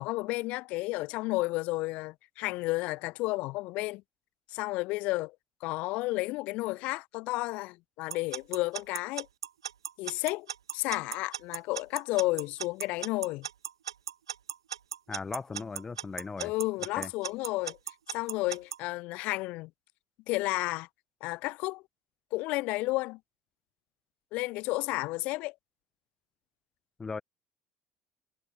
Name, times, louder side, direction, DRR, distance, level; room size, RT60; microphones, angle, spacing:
voice 1, 0.0-4.0 4.5-5.4 5.6-9.3 10.0-10.5 10.7-13.5 16.4-17.8 18.1-19.7 20.3-20.9 21.2-21.8 22.3-23.2 24.3-25.5, left 21 dB, 55° left, 0.5 m, -32 dB
Alarm / Clock, 8.1-18.8, right 9 dB, 75° right, 0.4 m, -36 dB
voice 2, 15.1-16.5 17.0-17.1 27.0-27.2, left 4 dB, 20° left, 0.9 m, -37 dB
figure-of-eight pair, 60°, 3 cm